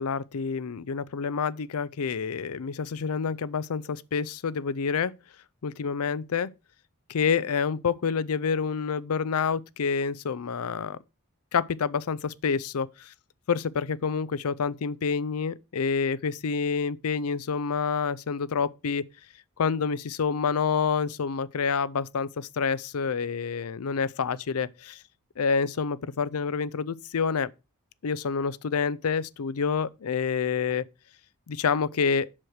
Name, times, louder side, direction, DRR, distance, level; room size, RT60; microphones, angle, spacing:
voice 1, 0.0-5.1 5.6-6.5 7.1-11.0 11.5-13.1 13.5-19.0 19.6-25.0 25.4-27.5 28.0-30.9 31.5-32.3, left 5 dB, 80° left, 0.5 m, -28 dB
7.4 x 6.5 x 4.7 m
head